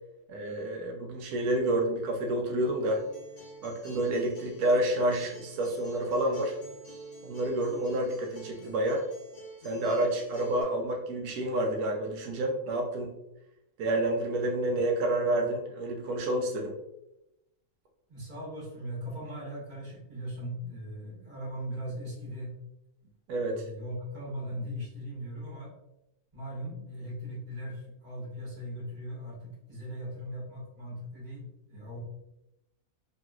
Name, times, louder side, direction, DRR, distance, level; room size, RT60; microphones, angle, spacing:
voice 1, 0.3-3.0 3.6-6.5 7.2-9.0 9.6-13.1 13.8-16.7 23.3-23.6, right 1 dB, 85° right, 1 dB, 1.1 m, -29 dB
Acoustic guitar, 2.6-10.6, right 3 dB, 40° left, 1.2 m, -47 dB
voice 2, 18.1-22.5 23.4-25.7 26.3-32.0, equal, 35° right, -7 dB, 1.4 m, -39 dB
3.1 x 2.8 x 2.3 m, 0.90 s
omnidirectional pair, 1.5 m